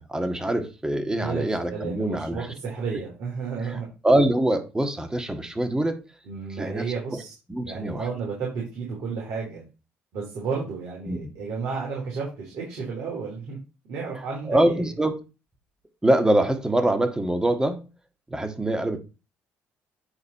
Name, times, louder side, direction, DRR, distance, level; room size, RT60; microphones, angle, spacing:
voice 1, 0.0-2.5 3.7-6.0 6.6-7.2 7.5-8.1 11.1-11.2 14.5-15.2 16.0-17.8 18.3-19.0, right 1 dB, 10° right, 1.8 m, -24 dB
voice 2, 1.1-3.9 6.2-7.3 7.7-9.6 10.1-13.6 13.9-14.9, right 5 dB, 65° right, 3.4 m, -32 dB
9.8 x 4.2 x 4.3 m
hypercardioid pair, 60°, 6 cm